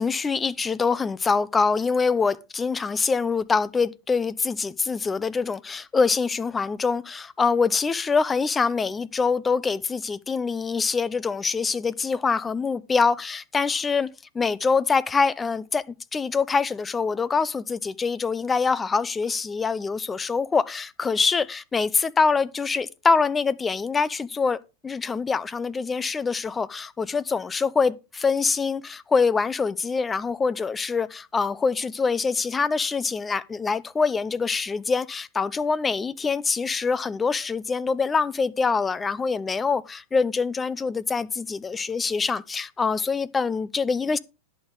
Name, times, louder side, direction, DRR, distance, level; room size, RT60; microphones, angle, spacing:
voice 1, 0.0-15.8 16.1-24.6 24.8-44.2, left 5 dB, 15° left, 0.6 m, -24 dB
11.0 x 8.1 x 3.9 m
supercardioid pair, 130°, 0 cm